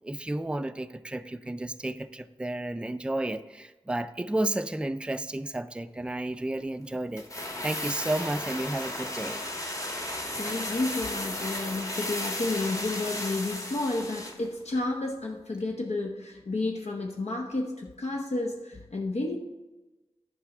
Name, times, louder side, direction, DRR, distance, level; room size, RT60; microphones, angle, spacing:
voice 1, 0.0-9.4, right 1 dB, 10° right, 11 dB, 0.4 m, -32 dB
sound 1, 7.2-14.5 14.7-14.8, left 1 dB, 30° left, 1.3 m, -34 dB
voice 2, 10.1-19.4, left 2 dB, 80° left, 1 dB, 0.9 m, -31 dB
10.0 x 5.6 x 4.8 m, 1.1 s
wide cardioid pair, 70°, 11 cm